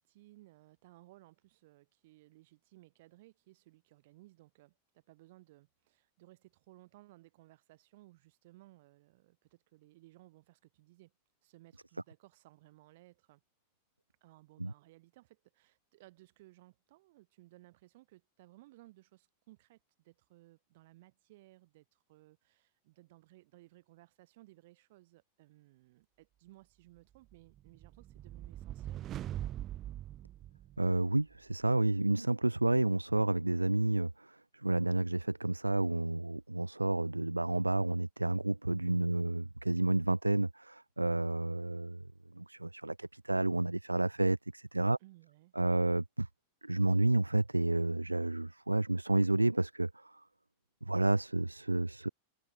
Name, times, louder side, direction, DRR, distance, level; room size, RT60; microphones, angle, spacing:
voice 1, 0.0-11.1 11.4-13.4 14.2-29.5 39.1-39.3 45.0-45.5, right 18 dB, 50° right, 6.6 m, -60 dB
sound 1, 27.3-31.2, right 12 dB, 30° right, 2.0 m, -42 dB
voice 2, 30.8-42.0 42.3-45.0 45.6-46.3 46.6-50.2 50.8-52.1, right 2 dB, 85° right, 0.6 m, -30 dB
figure-of-eight pair, 90°, 0 cm